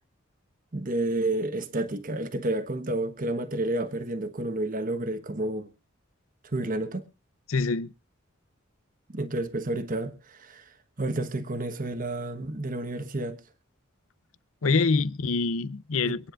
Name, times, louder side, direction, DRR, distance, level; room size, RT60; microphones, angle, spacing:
voice 1, 0.7-5.7 6.4-7.0 9.1-13.4 16.0-16.3, right 2 dB, 40° right, 1.2 m, -30 dB
voice 2, 7.5-7.9 14.6-16.3, left 4 dB, 80° left, 0.6 m, -25 dB
25.5 x 9.9 x 2.5 m
head